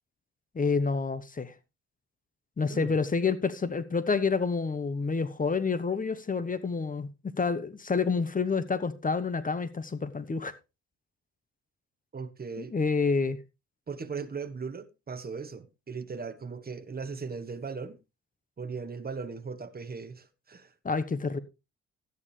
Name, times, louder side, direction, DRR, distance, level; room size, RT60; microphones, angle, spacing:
voice 1, 0.5-1.5 2.6-7.1 7.4-10.5 12.6-13.4 20.8-21.4, left 4 dB, 25° left, 1.1 m, -28 dB
voice 2, 12.1-12.7 13.9-18.0 18.6-20.7, right 5 dB, 30° right, 1.3 m, -38 dB
13.5 x 10.0 x 3.3 m
cardioid pair, 90°, 30 cm